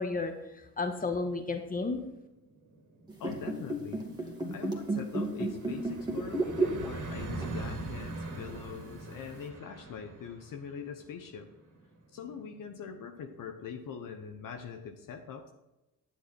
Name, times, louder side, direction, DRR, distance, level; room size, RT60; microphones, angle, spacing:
voice 1, 0.0-2.0, left 3 dB, 20° left, 5 dB, 1.7 m, -33 dB
sound 1, 2.3-13.7, right 2 dB, 50° right, 2.5 m, -43 dB
sound 2, 3.1-7.1 7.4-7.6 8.5-8.6, right 2 dB, 10° right, 2.3 m, -32 dB
voice 2, 3.2-11.5 12.1-15.5, left 6 dB, 55° left, 4 dB, 1.2 m, -43 dB
10.0 x 7.4 x 4.4 m, 0.97 s
supercardioid pair, 70°, 38 cm